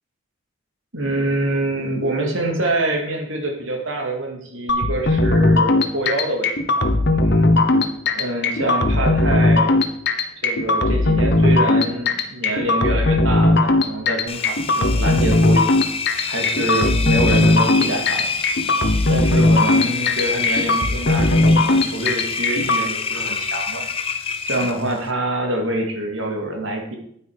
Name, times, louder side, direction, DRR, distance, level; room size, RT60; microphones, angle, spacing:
voice 1, 0.9-6.5 6.8-7.5 8.1-9.8 10.4-15.7 16.3-18.3 19.1-23.8 24.5-27.0, right 1 dB, 70° right, 2 dB, 2.3 m, -25 dB
sound 1, 4.7-22.8, left 2 dB, 55° left, 1.2 m, -18 dB
Engine, 14.3-25.1, left 5 dB, 30° left, 0.8 m, -27 dB
9.8 x 9.7 x 4.9 m, 0.68 s
head